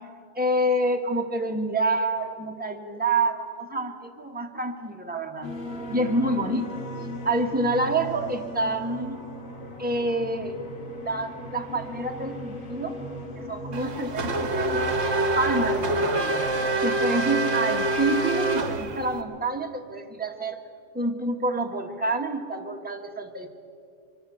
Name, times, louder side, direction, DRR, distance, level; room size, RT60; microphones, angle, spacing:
voice 1, 0.3-5.5 5.9-6.7 7.2-9.2 9.8-10.6 11.0-13.0 13.5-14.8 15.2-16.4 16.8-20.6 20.9-23.5, right 2 dB, 5° right, 3 dB, 1.2 m, -27 dB
sound 1, 5.4-15.1, equal, 85° left, 2.2 m, -38 dB
Race car auto racing / Accelerating revving vroom, 13.7-19.2, right 2 dB, 60° right, 1.5 m, -26 dB
23.5 x 13.5 x 8.4 m, 2.3 s
omnidirectional pair, 1.3 m